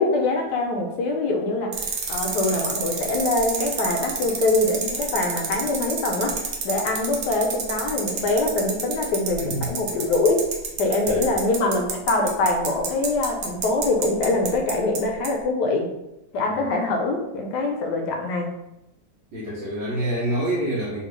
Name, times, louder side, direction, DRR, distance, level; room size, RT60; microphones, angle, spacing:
voice 1, 0.0-1.8 2.1-6.4 6.6-10.4 10.8-15.9 16.3-18.5, left 2 dB, 75° left, 2 dB, 1.1 m, -23 dB
sound 1, 1.7-15.0 15.2-15.3, right 6 dB, 65° right, 1.0 m, -28 dB
voice 2, 19.3-21.0, right 1 dB, 85° right, -8 dB, 1.6 m, -27 dB
3.5 x 2.6 x 3.0 m, 0.88 s
omnidirectional pair, 2.0 m